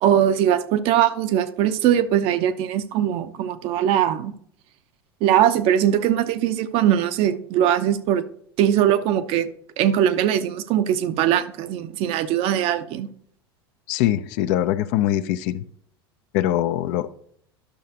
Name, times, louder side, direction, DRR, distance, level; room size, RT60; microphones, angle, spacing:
voice 1, 0.0-4.3 5.2-8.2 8.6-9.5 9.8-13.1, right 10 dB, 45° right, 0.7 m, -21 dB
voice 2, 13.9-15.6 16.3-17.1, left 13 dB, 55° left, 0.6 m, -22 dB
11.5 x 6.5 x 2.8 m
figure-of-eight pair, 80°, 13 cm